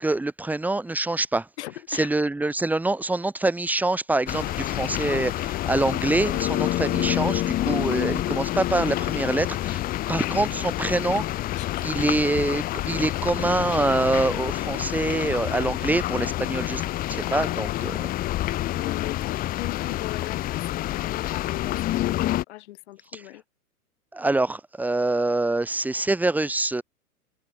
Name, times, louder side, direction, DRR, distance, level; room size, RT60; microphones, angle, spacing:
voice 1, 0.0-1.5 1.9-9.8 10.1-11.3 11.8-16.8 17.1-18.1 23.1-23.2 24.1-26.8, right 2 dB, 5° right, 1.6 m, -25 dB
voice 2, 1.6-2.1 11.5-12.0 18.7-23.4, left 16 dB, 45° left, 2.3 m, -39 dB
sound 1, 4.3-22.4, left 15 dB, 20° left, 1.0 m, -28 dB
figure-of-eight pair, 105°, 46 cm